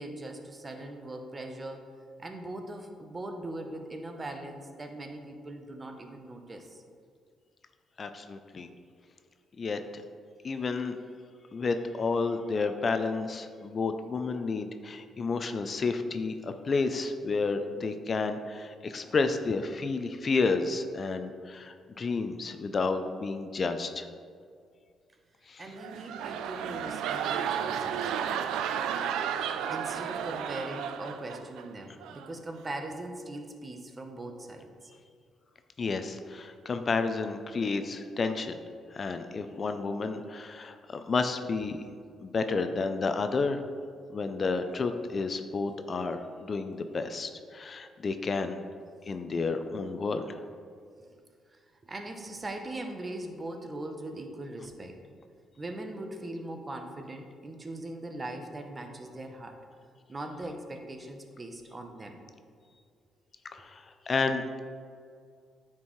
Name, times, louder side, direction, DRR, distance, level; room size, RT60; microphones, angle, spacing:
voice 1, 0.0-1.9 2.2-6.8 25.6-28.1 29.7-34.7 51.5-55.0 55.6-59.6 60.1-62.2, right 1 dB, 25° right, 5 dB, 0.8 m, -40 dB
voice 2, 8.0-8.7 9.6-10.0 10.4-11.0 11.5-24.1 25.5-25.7 35.8-38.5 38.9-41.8 42.2-43.6 44.1-48.6 49.1-50.4 63.5-64.6, left 4 dB, 40° left, 8 dB, 0.4 m, -31 dB
sound 1, 25.7-31.6 32.0-32.3, right 8 dB, 90° right, 0.3 m, -33 dB
9.4 x 4.4 x 3.1 m, 2.2 s
cardioid pair, 90°, 0 cm